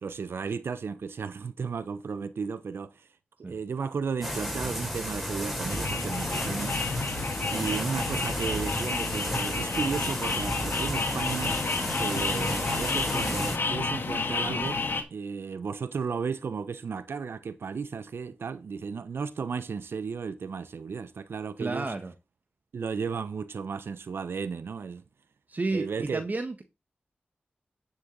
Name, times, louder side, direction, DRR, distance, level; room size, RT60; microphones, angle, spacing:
voice 1, 0.0-3.1 3.4-6.8 7.5-11.6 12.0-14.8 15.1-21.9 22.7-25.0 25.7-26.2, right 5 dB, 80° right, 1.0 m, -34 dB
sound 1, 4.2-13.6, equal, ahead, 5.1 m, -33 dB
sound 2, 5.5-15.0, left 4 dB, 70° left, 1.8 m, -31 dB
voice 2, 21.6-22.1 25.5-26.6, right 3 dB, 45° right, 1.5 m, -31 dB
10.0 x 6.5 x 4.0 m
cardioid pair, 40°, 4 cm